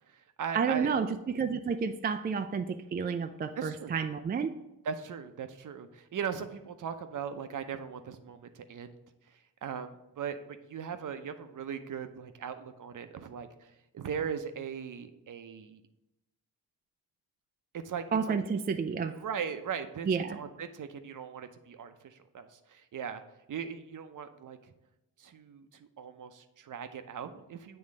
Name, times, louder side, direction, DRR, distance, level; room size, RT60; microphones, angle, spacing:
voice 1, 0.0-1.0 3.6-3.9 4.8-9.0 9.3-15.8 17.7-18.3 19.1-23.2 23.5-24.7 25.2-27.8, right 7 dB, 45° right, 9 dB, 0.7 m, -39 dB
voice 2, 0.5-4.5 18.1-19.1 20.1-20.4, right 6 dB, 25° right, 8 dB, 0.3 m, -30 dB
7.6 x 3.1 x 4.9 m, 0.93 s
supercardioid pair, 50°, 42 cm